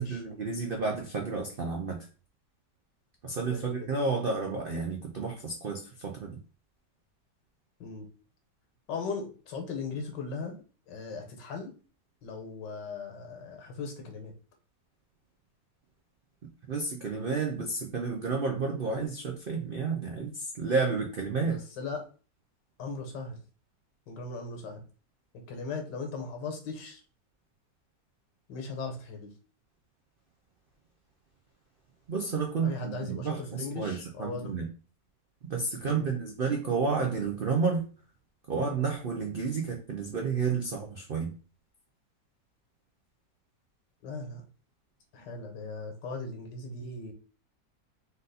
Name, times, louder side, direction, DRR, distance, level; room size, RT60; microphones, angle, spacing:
voice 1, 0.0-2.1 3.2-6.4 16.7-21.6 32.1-34.7 35.5-37.9 38.5-41.3, right 4 dB, 85° right, 1 dB, 0.5 m, -31 dB
voice 2, 3.4-3.9 7.8-8.1 8.9-10.6 10.9-11.7 12.2-14.3 21.4-22.1 22.8-23.4 24.1-24.8 25.3-27.0 28.5-29.3 32.6-34.6 35.8-36.0 44.0-44.4 45.1-47.1, left 4 dB, 80° left, 4 dB, 1.6 m, -38 dB
4.0 x 2.6 x 3.9 m, 0.36 s
omnidirectional pair, 1.9 m